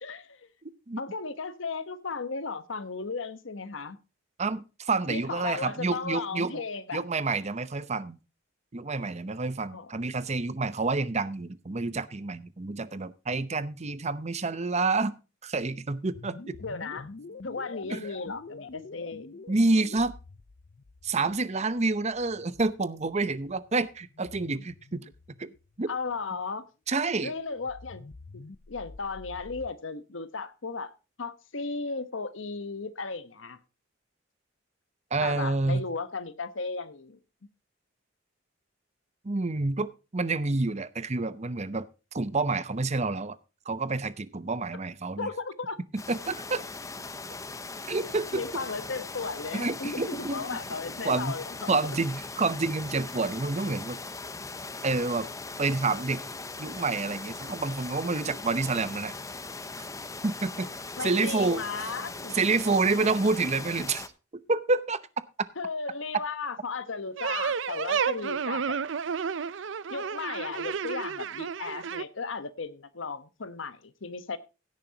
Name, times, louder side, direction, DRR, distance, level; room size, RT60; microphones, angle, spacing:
voice 1, 0.0-0.4 1.0-4.0 5.1-7.0 9.7-9.9 16.6-17.1 17.4-19.3 25.9-26.6 27.2-28.0 28.3-28.4 28.7-30.9 31.2-33.6 35.2-37.2 45.2-45.8 48.3-51.8 61.0-62.4 65.6-68.8 69.9-74.4, left 4 dB, 75° left, 1.1 m, -35 dB
voice 2, 4.4-6.6 6.9-8.2 8.7-15.1 15.4-16.5 17.9-18.1 19.5-20.1 21.0-25.0 25.4-25.5 25.8-25.9 26.9-27.3 35.1-35.9 39.2-43.4 43.7-45.3 46.1-46.6 47.9-48.4 49.5-50.6 51.0-51.3 51.7-54.0 54.8-55.3 55.6-56.2 56.6-59.1 60.2-60.7 61.0-61.6 62.3-64.1 64.3-65.0, right 3 dB, 35° right, 0.8 m, -28 dB
sound 1, 16.1-26.2 27.5-29.7, left 3 dB, 50° left, 0.6 m, -47 dB
sound 2, 46.0-64.1, left 3 dB, 15° left, 0.8 m, -40 dB
sound 3, 67.2-72.0, right 6 dB, 70° right, 0.5 m, -31 dB
16.5 x 9.3 x 2.8 m
head